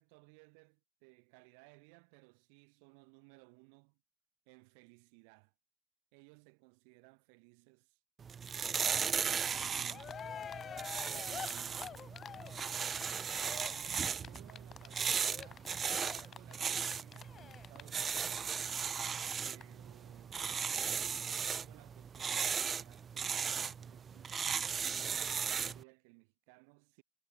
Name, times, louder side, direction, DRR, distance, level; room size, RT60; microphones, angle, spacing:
voice 1, 0.0-4.0 4.5-5.5 6.1-8.0 8.6-10.2 11.1-12.2 13.5-18.6 19.4-24.5 24.8-27.0, right 38 dB, 65° right, 7.4 m, -61 dB
sound 1, 8.2-25.8, right 7 dB, 35° right, 0.5 m, -37 dB
Cheering, 9.6-9.7 9.9-19.0 19.3-19.4 19.6-19.7, left 8 dB, 40° left, 3.7 m, -47 dB
figure-of-eight pair, 55°, 0 cm